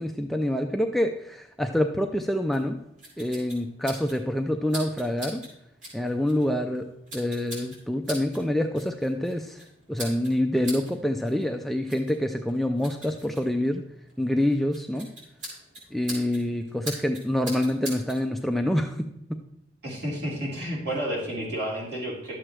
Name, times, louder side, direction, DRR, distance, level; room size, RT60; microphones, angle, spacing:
voice 1, 0.0-2.8 3.2-5.4 5.9-13.9 14.2-15.1 15.9-19.4, left 1 dB, ahead, 4 dB, 0.4 m, -26 dB
sound 1, 2.5-18.2, right 1 dB, 45° right, 3.7 m, -43 dB
voice 2, 19.8-22.3, right 1 dB, 60° right, -5 dB, 3.8 m, -31 dB
12.0 x 7.5 x 3.2 m, 0.79 s
head